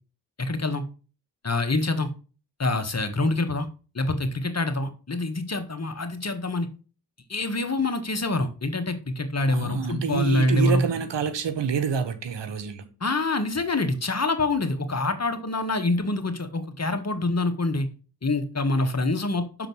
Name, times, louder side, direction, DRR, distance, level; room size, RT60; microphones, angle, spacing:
voice 1, 0.4-0.8 1.4-2.1 2.6-3.7 3.9-6.7 7.3-10.8 13.0-17.9 18.2-19.7, left 2 dB, 35° left, 1.5 m, -26 dB
voice 2, 9.5-12.8, right 6 dB, 80° right, 1.2 m, -27 dB
6.8 x 3.9 x 6.2 m
cardioid pair, 45°, 42 cm